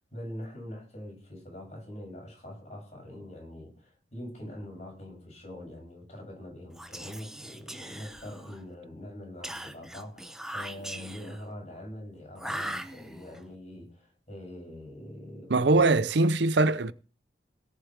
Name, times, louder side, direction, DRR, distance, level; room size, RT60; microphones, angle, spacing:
voice 1, 0.1-15.9, left 1 dB, 40° left, 7.7 m, -43 dB
Whispering, 6.7-8.7 9.4-11.5 12.4-13.4, right 1 dB, 5° right, 0.8 m, -40 dB
voice 2, 15.5-16.9, right 3 dB, 70° right, 0.7 m, -22 dB
18.0 x 7.0 x 4.8 m
head